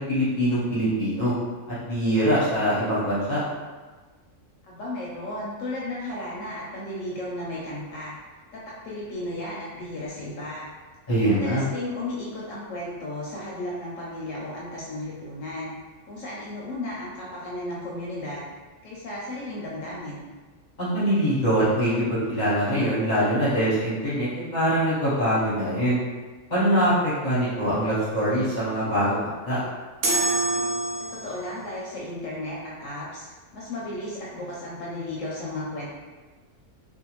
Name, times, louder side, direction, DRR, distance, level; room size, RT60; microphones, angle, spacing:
voice 1, 0.0-1.3 1.7-3.4 11.1-11.6 20.8-26.0 26.5-29.6, equal, 40° left, -10 dB, 0.7 m, -23 dB
voice 2, 4.7-8.1 8.5-10.7 11.3-15.7 16.0-18.5 18.8-20.3 31.0-33.3 33.5-35.9, left 1 dB, 70° left, -5 dB, 0.8 m, -34 dB
sound 1, 30.0-31.5, right 2 dB, 65° right, 0.8 m, -25 dB
2.6 x 2.2 x 2.9 m, 1.3 s
omnidirectional pair, 1.6 m